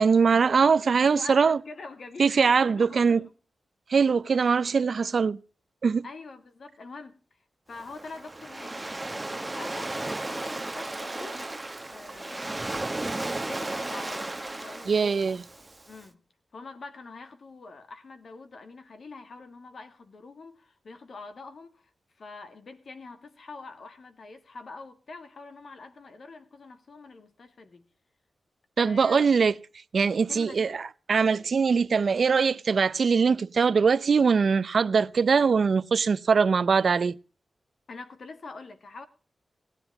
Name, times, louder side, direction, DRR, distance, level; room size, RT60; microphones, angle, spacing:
voice 1, 0.0-1.6 2.2-3.2 3.9-5.4 5.8-6.1 14.9-15.4 28.8-29.5 29.9-37.2, right 5 dB, 60° right, 0.6 m, -22 dB
voice 2, 1.0-3.3 6.0-7.2 7.7-8.8 9.1-11.5 11.9-12.6 13.0-15.4 15.9-16.2 16.5-21.9 22.2-27.8 28.8-29.2 30.3-30.8 37.9-39.1, left 3 dB, 60° left, 2.1 m, -45 dB
Waves surf, 7.7-16.0, right 2 dB, 15° right, 1.1 m, -35 dB
18.0 x 9.8 x 4.8 m
wide cardioid pair, 120°, 0 cm